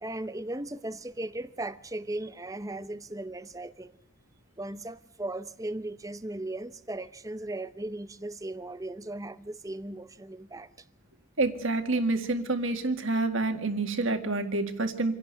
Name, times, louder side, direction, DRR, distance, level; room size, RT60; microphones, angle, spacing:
voice 1, 0.0-4.0 4.6-10.9, right 1 dB, 15° right, 0.7 m, -37 dB
voice 2, 11.4-15.1, right 2 dB, 60° right, 2.0 m, -28 dB
27.0 x 11.5 x 9.5 m
head